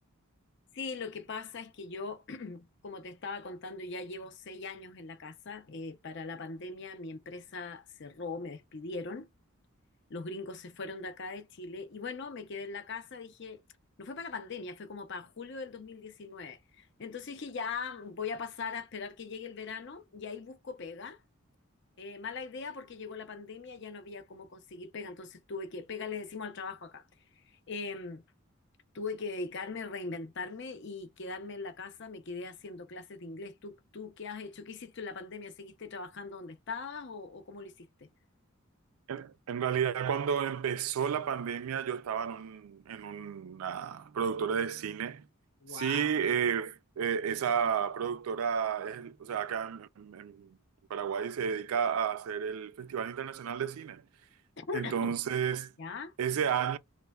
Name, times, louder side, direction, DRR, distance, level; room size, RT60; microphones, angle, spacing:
voice 1, 0.7-9.3 10.1-13.6 14.0-21.2 22.0-27.1 27.3-28.2 28.9-38.1 45.6-46.1 54.6-55.1 55.8-56.1, left 4 dB, 55° left, 0.6 m, -40 dB
voice 2, 39.1-45.3 45.7-50.6 50.9-54.0 54.7-55.7 56.2-56.8, right 7 dB, 85° right, 0.4 m, -32 dB
3.2 x 2.0 x 2.2 m
head